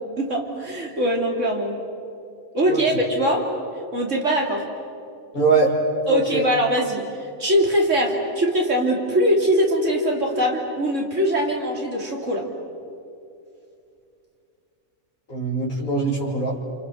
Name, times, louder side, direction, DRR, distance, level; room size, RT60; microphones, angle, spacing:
voice 1, 0.2-1.7 2.5-3.5 3.9-4.6 6.1-12.5, equal, 60° right, 0 dB, 3.7 m, -22 dB
voice 2, 5.3-5.8 6.1-6.5 15.3-16.6, right 3 dB, 90° left, -5 dB, 3.4 m, -22 dB
29.5 x 27.5 x 6.5 m, 2.6 s
omnidirectional pair, 1.5 m